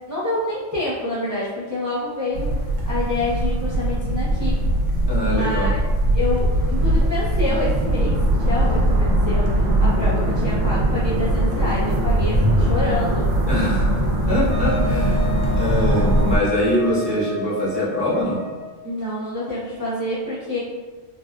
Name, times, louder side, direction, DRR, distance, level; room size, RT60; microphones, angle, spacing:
voice 1, 0.1-2.6 2.9-4.6 5.3-5.7 6.1-13.3 18.8-20.6, left 1 dB, 30° right, -10 dB, 0.3 m, -27 dB
sound 1, 2.3-16.4, right 1 dB, 75° right, 0.9 m, -20 dB
voice 2, 5.1-5.7 13.5-14.0 14.3-18.4, equal, 25° left, -11 dB, 0.8 m, -23 dB
Wind instrument woodwind instrument, 14.5-18.8, left 3 dB, 50° left, 1.2 m, -32 dB
3.4 x 2.3 x 2.3 m, 1.3 s
omnidirectional pair, 1.3 m